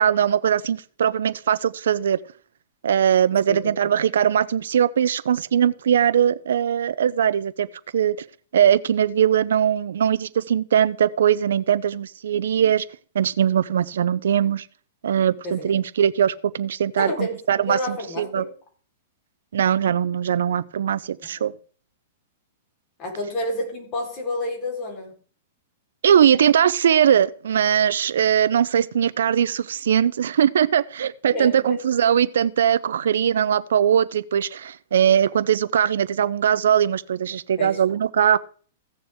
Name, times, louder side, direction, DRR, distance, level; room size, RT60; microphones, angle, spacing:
voice 1, 0.0-2.2 2.8-7.7 7.9-8.2 8.5-12.8 13.1-14.7 15.0-18.4 19.5-21.5 26.0-38.4, right 9 dB, 85° right, 0.5 m, -20 dB
voice 2, 17.0-18.5 23.0-25.1 31.3-31.8 37.6-37.8, left 1 dB, 30° left, 4.1 m, -29 dB
16.0 x 6.9 x 3.6 m
hypercardioid pair, 145°, 0 cm